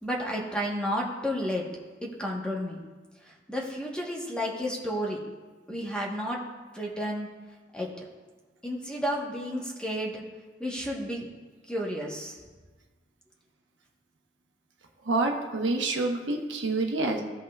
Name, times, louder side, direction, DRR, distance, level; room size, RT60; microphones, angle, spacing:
voice 1, 0.0-1.6 2.0-2.8 3.2-5.2 5.7-6.4 6.7-7.3 7.7-7.9 8.6-10.2 10.6-11.2 11.7-12.4, equal, 5° left, -3 dB, 1.2 m, -31 dB
voice 2, 15.1-17.2, right 2 dB, 80° right, 1 dB, 1.1 m, -27 dB
16.0 x 5.5 x 2.4 m, 1.3 s
head